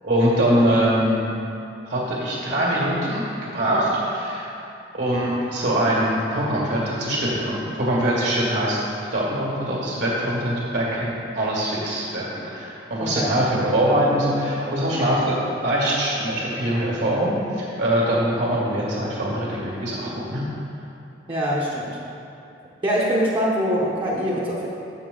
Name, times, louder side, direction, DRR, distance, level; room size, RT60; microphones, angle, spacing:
voice 1, 0.0-1.3 1.9-3.2 3.5-4.5 4.9-8.8 9.1-12.3 12.5-20.4, right 1 dB, 65° right, -6 dB, 1.8 m, -23 dB
voice 2, 13.0-13.3 21.3-22.0 22.8-24.7, equal, 30° right, -5 dB, 0.9 m, -23 dB
7.4 x 6.8 x 3.8 m, 2.8 s
head